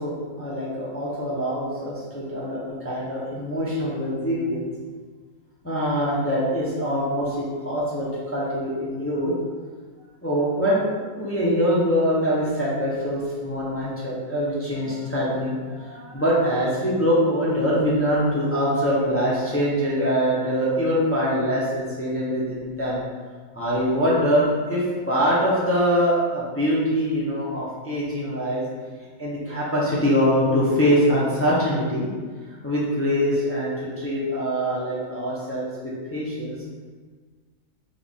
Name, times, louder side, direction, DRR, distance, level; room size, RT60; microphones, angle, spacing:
voice 1, 0.0-4.6 5.6-9.3 10.2-10.9 11.2-23.0 23.5-28.6 29.2-32.1 32.6-36.6, equal, 15° left, -7 dB, 0.7 m, -23 dB
4.3 x 3.2 x 3.6 m, 1.5 s
omnidirectional pair, 1.4 m